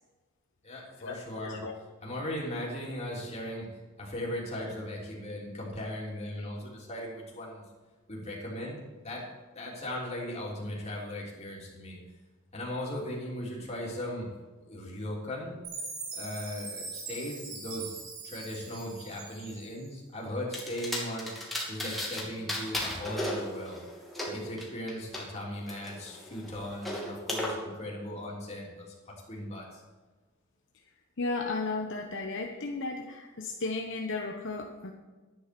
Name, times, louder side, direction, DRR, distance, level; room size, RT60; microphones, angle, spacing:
voice 1, 0.6-1.6 2.0-3.7 4.0-7.6 8.1-9.2 9.5-12.0 12.5-14.3 14.6-15.6 16.1-17.9 18.2-21.3 21.7-23.8 24.2-28.9 29.3-29.8, left 1 dB, 30° left, -3 dB, 3.2 m, -38 dB
Chime, 15.6-19.9, right 4 dB, 80° right, 4.4 m, -42 dB
sound 1, 20.5-22.2 22.5-25.2 25.7-27.5, left 1 dB, ahead, 2.8 m, -35 dB
voice 2, 31.2-34.9, left 3 dB, 65° left, 2 dB, 1.0 m, -34 dB
11.5 x 9.9 x 6.1 m, 1.3 s
head